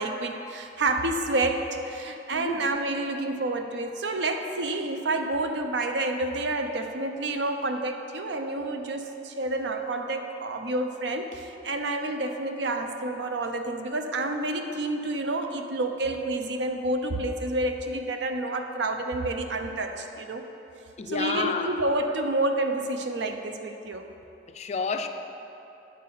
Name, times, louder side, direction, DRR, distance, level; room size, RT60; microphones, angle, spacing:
voice 1, 0.0-20.4 21.1-24.1 24.9-25.0, right 2 dB, 70° right, 5 dB, 0.6 m, -29 dB
voice 2, 2.3-2.7 21.0-21.8 24.5-25.1, left 5 dB, 40° left, 6 dB, 0.4 m, -30 dB
9.4 x 4.2 x 5.6 m, 3.0 s
head